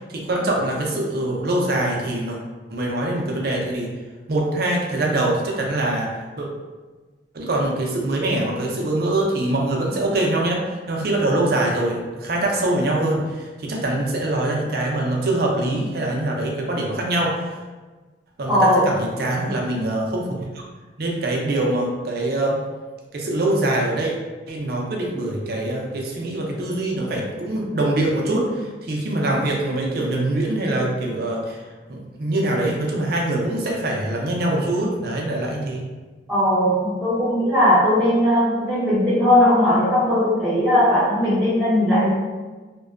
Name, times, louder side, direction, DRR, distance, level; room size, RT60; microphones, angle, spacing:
voice 1, 0.1-2.4 2.7-3.9 4.3-6.5 7.3-17.5 18.4-20.4 21.0-22.6 23.1-24.1 24.5-31.6 31.9-35.9, right 1 dB, 55° right, -1 dB, 0.5 m, -23 dB
voice 2, 18.5-18.9 36.3-42.1, left 1 dB, ahead, -14 dB, 0.6 m, -18 dB
2.6 x 2.2 x 2.3 m, 1.3 s
head